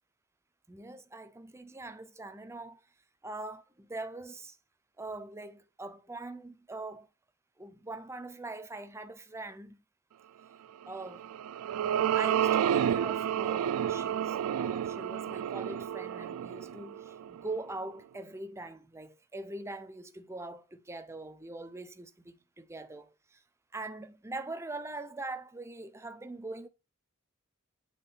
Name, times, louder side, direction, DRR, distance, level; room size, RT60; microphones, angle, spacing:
voice 1, 0.7-2.8 3.2-4.6 5.0-7.1 7.6-9.8 10.9-11.3 12.1-23.4 23.7-26.7, right 2 dB, 10° right, 0.6 m, -42 dB
sound 1, 11.1-17.6, right 9 dB, 85° right, 0.3 m, -30 dB
9.0 x 3.6 x 5.6 m
head